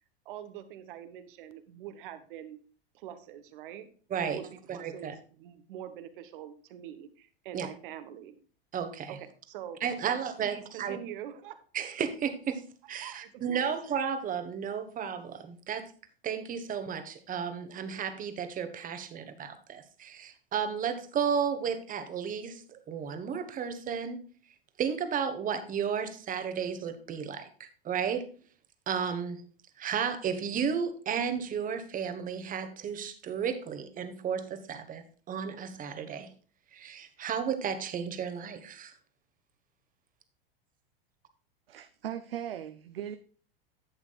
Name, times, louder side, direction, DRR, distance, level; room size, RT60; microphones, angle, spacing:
voice 1, 0.2-2.6 2.9-3.9 4.2-8.3 9.1-11.6 13.0-13.7, right 10 dB, 60° right, 10 dB, 1.2 m, -44 dB
voice 2, 4.1-4.4 4.7-5.1 7.5-7.7 8.7-9.2 9.8-11.0 11.7-12.6 12.9-15.9 16.2-24.2 24.8-28.3 28.9-29.4 29.8-36.3 36.7-38.9, right 7 dB, 30° right, 8 dB, 1.3 m, -33 dB
voice 3, 41.7-43.2, right 10 dB, 80° right, 9 dB, 0.7 m, -38 dB
11.0 x 8.0 x 2.4 m, 0.41 s
hypercardioid pair, 95°, 29 cm